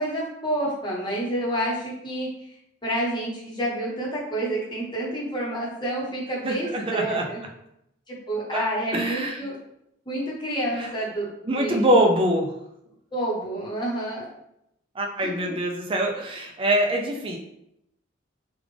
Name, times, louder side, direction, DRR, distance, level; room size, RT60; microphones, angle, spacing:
voice 1, 0.0-2.3 2.8-7.4 8.1-9.6 10.1-11.3 11.6-12.0 13.1-14.3 15.2-15.6, right 1 dB, 25° left, -5 dB, 1.0 m, -29 dB
voice 2, 6.4-7.2 8.5-8.6 8.9-9.4 10.8-10.9 11.5-12.5 15.0-17.4, right 1 dB, 25° right, 2 dB, 0.5 m, -24 dB
3.4 x 2.4 x 3.3 m, 0.80 s
head